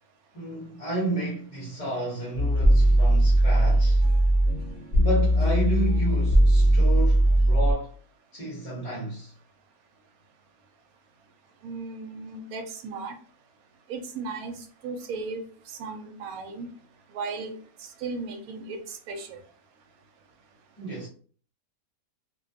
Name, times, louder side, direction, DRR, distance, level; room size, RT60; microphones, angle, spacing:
voice 1, 0.3-4.0 4.9-7.9 8.3-9.3 20.8-21.1, right 2 dB, 35° left, 0.6 m, -31 dB
sound 1, 2.3-7.7, right 1 dB, 50° right, 0.6 m, -20 dB
voice 2, 11.6-13.2 13.9-14.6 14.8-15.4 15.7-16.7 17.1-17.5 17.8-19.4, right 4 dB, 85° right, 1.0 m, -36 dB
2.3 x 2.2 x 2.5 m
omnidirectional pair, 1.5 m